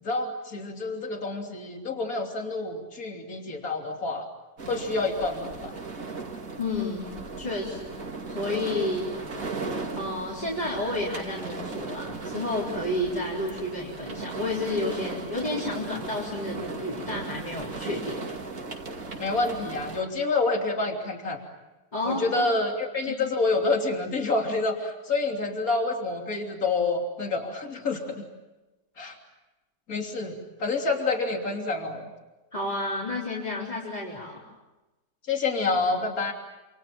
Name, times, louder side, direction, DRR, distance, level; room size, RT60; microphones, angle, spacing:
voice 1, 0.0-4.3 4.7-5.7 19.2-21.4 22.1-28.3 29.0-29.2 29.9-32.0 35.3-36.3, left 3 dB, 60° left, 2 dB, 3.6 m, -28 dB
sound 1, 4.6-20.0, right 3 dB, 55° right, 2.9 m, -37 dB
voice 2, 6.6-8.0 8.3-9.1 10.0-18.2 21.9-22.5 23.1-23.2 32.5-34.4, left 2 dB, 25° left, -5 dB, 4.4 m, -31 dB
29.0 x 27.0 x 7.4 m, 1.1 s
omnidirectional pair, 1.7 m